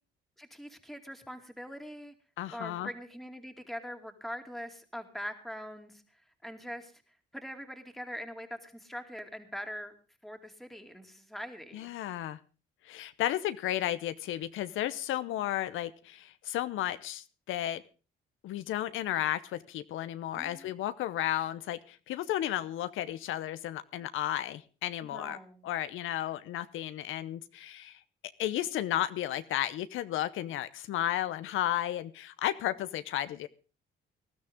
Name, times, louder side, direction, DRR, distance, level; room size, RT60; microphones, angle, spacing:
voice 1, 0.4-2.1 2.5-6.9 7.3-9.9 10.2-11.9 20.4-20.7 25.1-25.7, equal, ahead, 5 dB, 2.5 m, -43 dB
voice 2, 2.4-2.9 11.7-12.4 12.8-17.8 18.4-25.4 25.6-28.0 28.4-33.5, left 12 dB, 85° left, 13 dB, 0.8 m, -33 dB
19.0 x 12.5 x 3.6 m, 0.35 s
cardioid pair, 90°, 20 cm